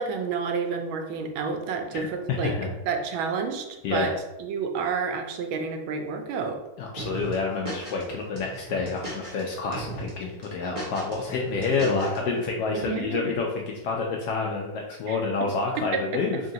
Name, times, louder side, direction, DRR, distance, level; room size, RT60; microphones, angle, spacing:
voice 1, 0.0-2.6 2.9-4.1 4.4-6.6 12.7-13.3 15.1-15.2 15.8-16.2, right 5 dB, 85° right, 5 dB, 1.4 m, -29 dB
voice 2, 1.9-2.7 3.8-4.1 6.8-16.4, left 4 dB, 75° left, 0 dB, 1.0 m, -28 dB
sound 1, 7.0-8.0 8.3-9.4 9.7-10.1 10.4-12.2, right 1 dB, 35° right, 0.5 m, -36 dB
3.7 x 2.8 x 3.8 m, 0.98 s
omnidirectional pair, 2.2 m